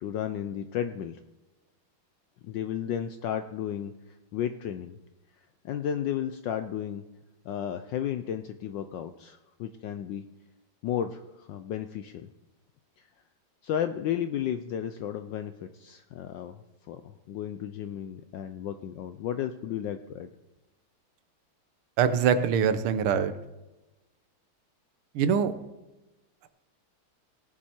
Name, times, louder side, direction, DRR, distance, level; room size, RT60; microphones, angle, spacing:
voice 1, 0.0-1.2 2.4-3.9 4.3-5.0 5.6-7.0 7.4-10.2 10.8-12.3 13.0-13.1 13.6-16.6 16.9-20.3, left 9 dB, 70° left, 9 dB, 1.1 m, -33 dB
voice 2, 22.0-23.3 25.2-25.5, right 7 dB, 85° right, 11 dB, 1.7 m, -23 dB
18.0 x 7.4 x 4.4 m, 1.0 s
omnidirectional pair, 2.3 m